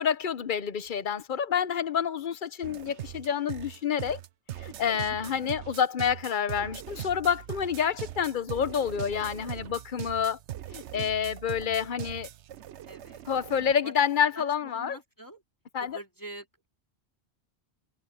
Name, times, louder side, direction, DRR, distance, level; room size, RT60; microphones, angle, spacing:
voice 1, 0.0-4.2 4.6-10.4 10.7-12.3 13.3-15.0 15.7-16.0, left 8 dB, 50° left, 0.9 m, -28 dB
sound 1, 2.6-13.7, right 12 dB, 85° right, 1.0 m, -41 dB
voice 2, 5.0-5.6 12.8-13.2 13.8-13.9 14.3-15.4 15.8-16.7, right 1 dB, 15° left, 2.8 m, -46 dB
omnidirectional pair, 1.1 m